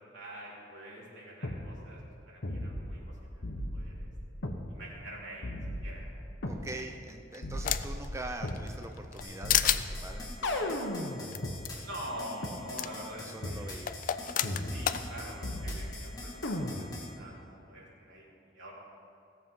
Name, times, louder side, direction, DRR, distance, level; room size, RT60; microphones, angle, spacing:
voice 1, 0.1-2.0 2.3-4.1 4.7-5.5 5.8-6.3 11.8-13.7 14.6-18.7, right 1 dB, 85° right, -5 dB, 3.4 m, -45 dB
sound 1, 1.4-1.6 2.4-3.1 3.4-4.6 5.4-6.6 7.4-8.7 9.4-11.6 12.4-12.5 13.4-13.7 14.4-15.1 15.4-16.1 16.4-17.1, left 1 dB, 80° left, 1.2 m, -36 dB
voice 2, 6.5-10.8 13.2-14.1, right 2 dB, 15° right, 4 dB, 0.5 m, -43 dB
sound 2, 6.7-8.1 8.5-9.2 9.5-9.8 11.3-11.4 11.6-11.7 12.8-12.9 13.9-15.0, left 11 dB, 45° left, 0.4 m, -29 dB
sound 3, 9.2-17.1, left 2 dB, 20° left, 2.1 m, -44 dB
16.5 x 7.3 x 5.6 m, 2.8 s
head